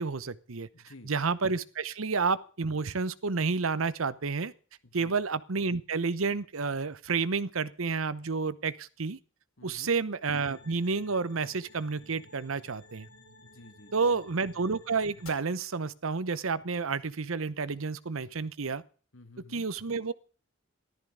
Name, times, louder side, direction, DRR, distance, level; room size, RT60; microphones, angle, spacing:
voice 1, 0.0-0.7 1.1-4.5 4.9-9.2 9.6-13.1 13.9-18.8 19.5-20.1, right 4 dB, 75° right, 17 dB, 0.8 m, -30 dB
voice 2, 0.7-1.1 4.8-5.2 9.6-9.9 13.4-14.1 19.1-19.7, left 2 dB, 70° left, 9 dB, 1.9 m, -52 dB
sound 1, 10.3-15.3, left 2 dB, 90° left, 4.6 m, -54 dB
14.5 x 13.0 x 5.0 m, 0.40 s
head